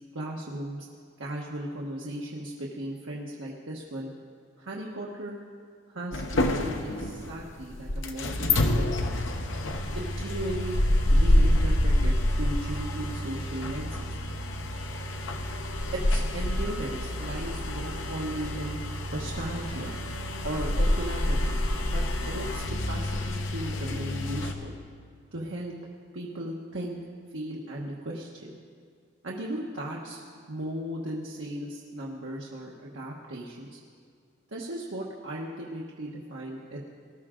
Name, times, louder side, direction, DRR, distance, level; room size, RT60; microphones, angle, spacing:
voice 1, 0.1-0.9 1.2-4.1 4.6-5.4 5.9-8.8 9.9-10.8 11.1-14.0 15.9-18.8 19.1-20.0 20.4-21.6 21.9-24.7 25.3-25.7 26.1-27.0 27.3-28.5 29.2-30.2 30.5-33.8 34.5-36.8, right 1 dB, 85° right, -3 dB, 1.2 m, -36 dB
sound 1, 6.1-24.5, left 1 dB, 80° left, 1.0 m, -27 dB
19.0 x 12.5 x 3.8 m, 2.1 s
head